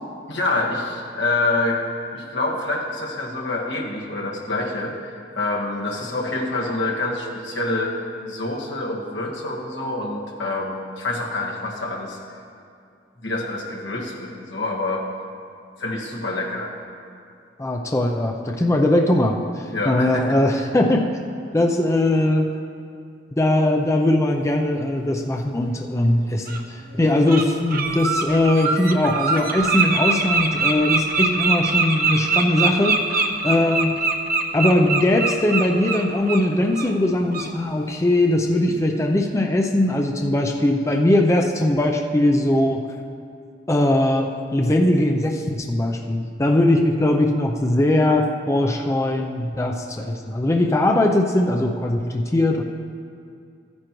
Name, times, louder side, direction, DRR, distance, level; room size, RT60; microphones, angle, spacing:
voice 1, 0.3-1.8 2.1-7.9 8.3-12.2 13.2-15.0 15.8-16.7 19.7-20.4, left 2 dB, 85° left, -2 dB, 1.6 m, -26 dB
voice 2, 17.6-21.1 21.5-22.5 23.4-34.1 34.5-42.8 43.7-52.6, left 1 dB, 15° left, 2 dB, 0.5 m, -20 dB
Bird, 25.6-25.7 26.5-26.6 27.0-27.4 27.7-36.4 36.7-36.9 37.3-37.5, right 4 dB, 55° right, 0.8 m, -23 dB
14.5 x 9.7 x 3.0 m, 2.4 s
head